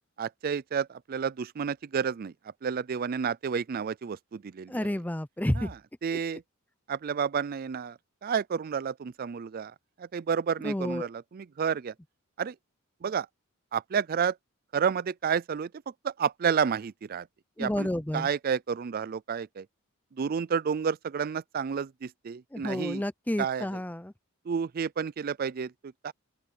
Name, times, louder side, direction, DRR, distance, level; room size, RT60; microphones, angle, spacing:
voice 1, 0.2-2.3 2.6-4.9 5.6-5.7 6.0-6.4 6.9-9.7 10.0-11.9 12.4-12.6 13.0-13.3 13.7-14.4 14.7-15.7 16.0-17.3 17.6-17.9 18.1-19.7 20.2-23.0 23.4-23.7 24.5-26.1, right 6 dB, 40° right, 0.4 m, -30 dB
voice 2, 4.7-5.7 6.1-6.2 10.6-11.1 17.6-18.3 22.5-24.1, left 1 dB, 10° left, 0.5 m, -30 dB
open air
head